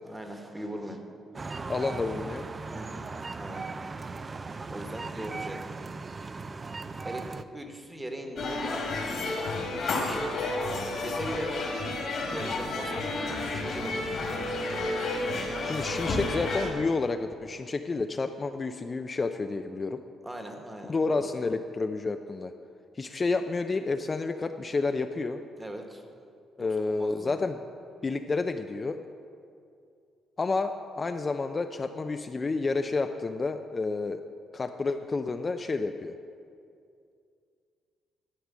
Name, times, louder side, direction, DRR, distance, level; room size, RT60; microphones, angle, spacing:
voice 1, 0.0-1.0 2.7-3.6 4.7-5.8 7.0-9.1 9.8-10.4 10.9-11.7 12.3-14.2 20.2-21.3 25.6-26.0 26.6-27.3, right 1 dB, 15° right, 4 dB, 1.3 m, -40 dB
sound 1, 1.3-7.4, right 4 dB, 30° right, 0.4 m, -38 dB
voice 2, 1.7-2.5 15.6-20.0 20.9-22.5 23.0-25.4 26.6-27.6 28.0-29.0 30.4-34.2 34.5-36.1, left 3 dB, 30° left, 7 dB, 0.4 m, -30 dB
sound 2, 8.4-16.7, left 2 dB, 60° left, 2.0 m, -31 dB
11.5 x 4.8 x 7.4 m, 2.4 s
cardioid pair, 90°, 0 cm